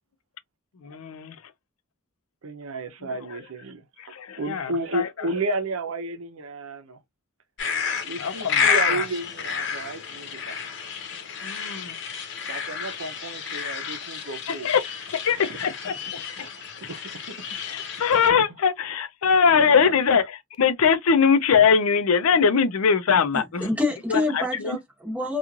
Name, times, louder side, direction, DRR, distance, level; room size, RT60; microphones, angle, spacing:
voice 1, 0.8-1.4 4.0-5.1 8.2-8.8 11.4-12.0 14.6-14.8 15.3-16.2 17.6-23.7 24.1-24.8, left 6 dB, 85° left, 0.5 m, -22 dB
voice 2, 2.4-3.8 4.4-7.0 8.0-10.6 12.5-14.7 15.4-15.9 16.4-16.5 16.8-17.9 18.3-18.6 19.6-19.9, right 2 dB, 75° right, 0.7 m, -33 dB
sound 1, 7.6-18.3, left 6 dB, 60° left, 0.9 m, -30 dB
voice 3, 23.3-25.4, left 2 dB, 5° right, 1.0 m, -27 dB
3.0 x 2.4 x 2.4 m
head